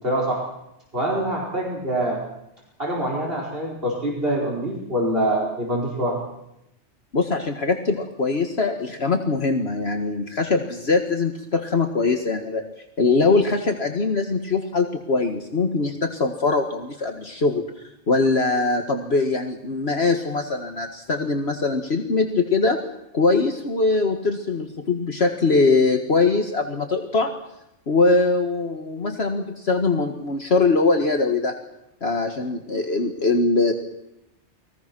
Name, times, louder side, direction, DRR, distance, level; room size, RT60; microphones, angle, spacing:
voice 1, 0.0-0.4 0.9-2.2 2.8-6.2, right 1 dB, 50° right, -2 dB, 5.3 m, -25 dB
voice 2, 7.1-12.6 13.0-17.6 18.1-22.8 23.1-27.3 27.9-31.6 32.0-33.7, left 3 dB, 60° left, 4 dB, 1.9 m, -22 dB
29.5 x 22.0 x 6.1 m, 0.85 s
omnidirectional pair, 1.2 m